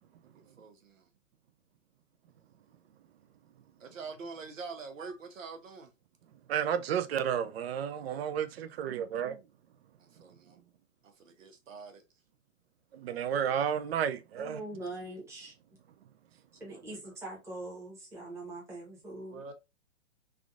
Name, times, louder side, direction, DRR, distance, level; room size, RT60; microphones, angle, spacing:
voice 1, 0.3-1.1 3.8-5.9 10.0-10.6 11.0-12.0 16.7-17.0 19.3-19.5, right 4 dB, 80° right, 0.9 m, -45 dB
voice 2, 6.5-9.3 12.9-14.6, right 8 dB, 55° right, 0.5 m, -32 dB
voice 3, 14.4-15.5 16.6-19.4, right 2 dB, 5° right, 1.0 m, -42 dB
3.5 x 2.4 x 2.4 m
hypercardioid pair, 135°, 39 cm